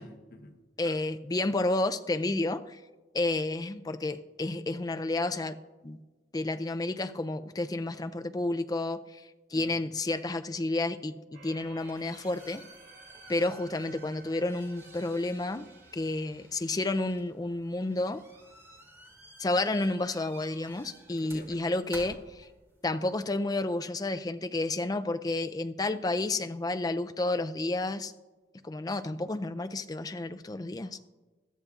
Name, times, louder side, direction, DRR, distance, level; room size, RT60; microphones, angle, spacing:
voice 1, 0.0-1.0 9.5-9.8 21.1-21.7 30.8-31.1, left 2 dB, 50° left, 5 dB, 1.1 m, -50 dB
voice 2, 0.8-2.8 3.1-5.6 5.8-6.0 6.3-12.6 13.3-15.7 15.9-18.2 19.4-22.5 22.8-28.1 28.6-31.0, left 2 dB, 20° left, 9 dB, 0.4 m, -31 dB
sound 1, 11.3-16.1, right 4 dB, 70° right, 2.5 m, -55 dB
sound 2, 11.5-23.0, right 1 dB, 15° right, 2.5 m, -53 dB
21.0 x 13.5 x 2.4 m, 1.2 s
head